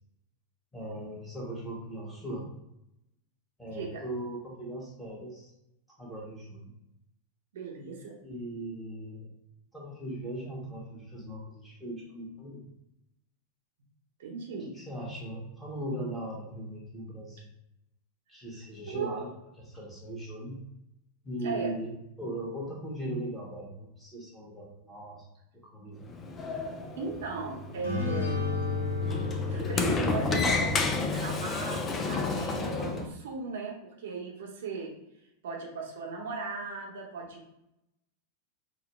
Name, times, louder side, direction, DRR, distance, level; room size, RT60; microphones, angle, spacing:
voice 1, 0.7-2.5 3.6-5.5 5.9-6.7 8.2-9.3 9.7-12.7 14.7-17.5 18.3-19.3 19.6-20.6 21.2-25.3 25.5-26.0, right 1 dB, 5° left, -4 dB, 1.3 m, -39 dB
voice 2, 3.7-4.0 7.5-8.1 14.2-14.7 18.9-19.2 21.4-21.7 27.0-28.4 29.1-34.9 35.4-37.5, right 4 dB, 60° right, -1 dB, 0.8 m, -37 dB
Sliding door, 26.0-33.1, left 3 dB, 20° left, 0.4 m, -31 dB
sound 1, 27.8-31.4, left 3 dB, 65° left, 1.0 m, -32 dB
5.3 x 2.2 x 3.2 m, 0.86 s
figure-of-eight pair, 90°, 0 cm